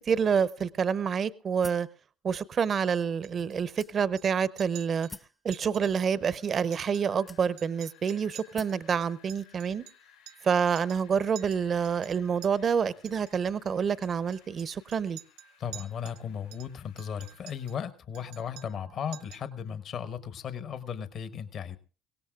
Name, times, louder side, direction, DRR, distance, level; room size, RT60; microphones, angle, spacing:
voice 1, 0.1-1.9 2.2-5.1 5.4-9.8 10.4-15.2, right 6 dB, 45° right, 0.7 m, -28 dB
sound 1, 1.6-2.0 2.7-2.8 3.8-4.3 5.1-5.4 6.4-6.5 7.3-7.8 8.6-8.9, left 2 dB, 15° left, 0.6 m, -46 dB
Chink clink, 3.2-3.8 4.2-4.3 4.6-5.1 5.5-5.8 6.1-6.2 6.6-7.3 7.6-10.5 10.8-11.1 11.4-12.5 13.1-13.3 14.0-16.2 16.5-17.8 18.1-18.9 19.1-19.5, right 12 dB, 80° right, 0.9 m, -50 dB
Wind, 5.8-17.8, left 10 dB, 90° left, 3.6 m, -61 dB
voice 2, 15.6-21.8, left 7 dB, 55° left, 1.2 m, -36 dB
23.0 x 17.5 x 2.4 m
hypercardioid pair, 60°, 0 cm